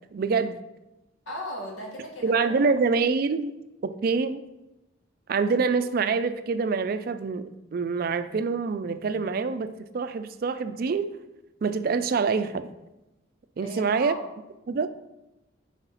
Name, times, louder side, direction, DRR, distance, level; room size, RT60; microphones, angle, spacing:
voice 1, 0.1-0.6 2.2-3.5 3.8-4.4 5.3-11.1 11.6-12.7 13.6-14.1 14.7-14.9, right 4 dB, 45° right, 12 dB, 0.3 m, -26 dB
voice 2, 1.2-2.7 13.6-14.3, equal, 85° left, -1 dB, 1.7 m, -37 dB
4.9 x 4.0 x 5.5 m, 0.96 s
head